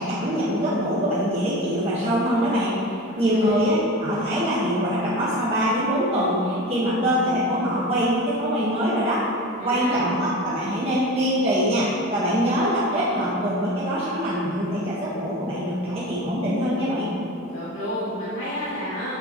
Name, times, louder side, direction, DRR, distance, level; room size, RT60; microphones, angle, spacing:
voice 1, 0.0-9.2 9.6-17.1, equal, 30° right, -10 dB, 1.4 m, -23 dB
voice 2, 9.6-10.1 17.5-19.2, equal, 85° left, -12 dB, 2.3 m, -30 dB
13.0 x 8.3 x 3.0 m, 2.8 s
head